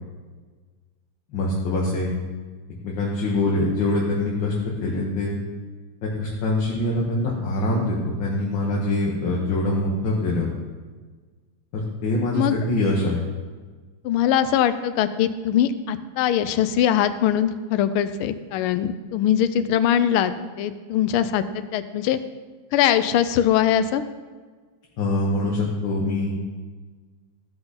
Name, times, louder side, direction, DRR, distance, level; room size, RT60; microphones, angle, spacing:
voice 1, 1.3-2.1 2.8-4.5 4.8-5.3 6.0-10.5 11.7-13.3 25.0-26.3, left 2 dB, 65° left, -3 dB, 1.9 m, -24 dB
voice 2, 14.0-22.2 22.7-24.0, left 10 dB, 85° left, 12 dB, 1.5 m, -22 dB
14.5 x 5.8 x 4.0 m, 1.4 s
omnidirectional pair, 2.3 m